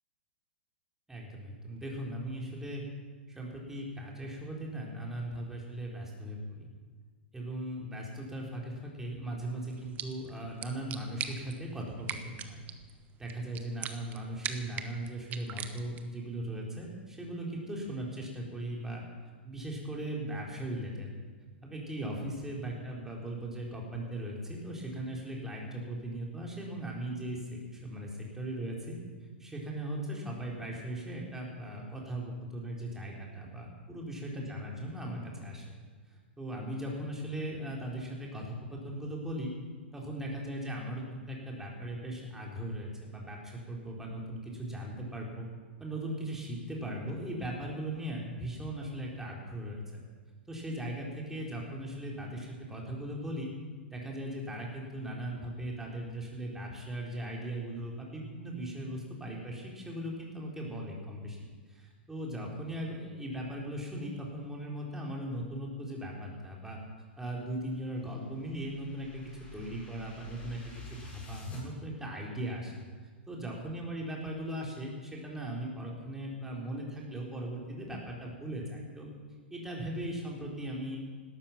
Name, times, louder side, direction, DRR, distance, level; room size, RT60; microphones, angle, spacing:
voice 1, 1.1-2.8 3.3-6.7 7.3-12.6 13.2-19.0 19.4-21.1 21.6-29.0 29.4-35.8 36.4-39.5 39.9-45.5 45.8-49.8 50.5-53.5 53.9-61.4 61.7-66.8 67.2-72.8 73.3-79.1 79.5-81.0, right 1 dB, 5° right, -2 dB, 3.9 m, -38 dB
sound 1, 9.7-16.2, right 8 dB, 25° right, 1.1 m, -42 dB
sound 2, 67.6-71.6, left 3 dB, 20° left, 5.8 m, -49 dB
17.0 x 13.0 x 5.9 m, 1.5 s
hypercardioid pair, 125°, 6 cm